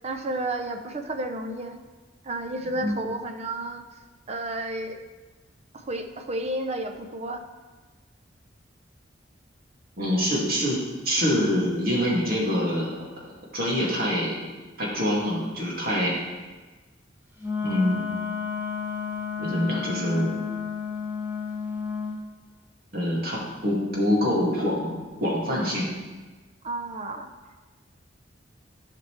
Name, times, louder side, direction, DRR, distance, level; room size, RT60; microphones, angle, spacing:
voice 1, 0.0-1.8 2.2-3.8 4.3-5.0 5.7-7.5 26.6-27.3, right 1 dB, 35° right, 6 dB, 0.6 m, -31 dB
voice 2, 10.0-13.1 13.5-14.4 14.8-16.1 17.6-18.0 19.4-20.3 22.9-25.9, equal, 55° right, -5 dB, 2.2 m, -25 dB
Wind instrument woodwind instrument, 17.4-22.2, left 6 dB, 15° right, 1.6 m, -31 dB
11.0 x 5.9 x 3.3 m, 1.3 s
head